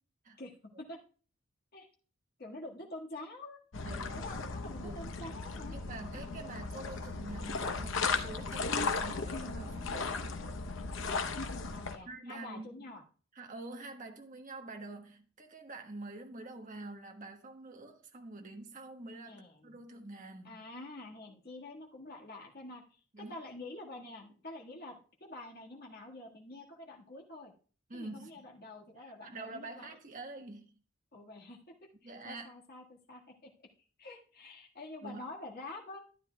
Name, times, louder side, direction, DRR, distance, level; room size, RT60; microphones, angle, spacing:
voice 1, 0.4-1.0 1.7-1.9 2.4-3.6 4.1-5.8 11.7-13.0 19.2-19.8 20.4-27.5 27.9-29.9 31.1-31.6 32.0-33.5 34.0-36.0, left 2 dB, 50° left, 1.7 m, -47 dB
sound 1, 3.7-12.0, left 4 dB, 65° left, 0.8 m, -36 dB
voice 2, 3.8-4.3 4.8-5.1 5.6-10.3 12.0-12.8 13.3-20.6 23.1-23.3 27.9-28.5 29.0-30.7 32.0-32.5 35.0-35.2, right 2 dB, 40° right, 1.2 m, -46 dB
13.0 x 9.8 x 2.3 m
head